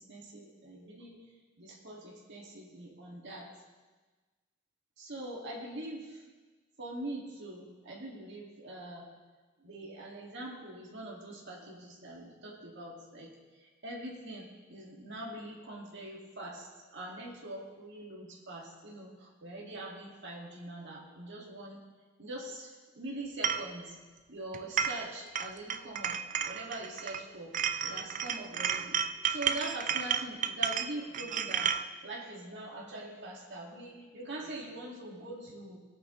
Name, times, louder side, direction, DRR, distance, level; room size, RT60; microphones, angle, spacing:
voice 1, 0.1-1.2 1.6-3.5 5.0-6.2 6.8-9.1 9.6-13.3 13.8-21.8 22.2-24.0 24.3-27.6 27.8-29.0 29.3-35.8, right 1 dB, 60° right, -3 dB, 2.0 m, -43 dB
sound 1, 23.4-23.7 24.5-25.1 25.4-27.2 27.5-31.8, right 8 dB, 40° right, 0.4 m, -32 dB
20.5 x 8.3 x 3.1 m, 1.3 s
head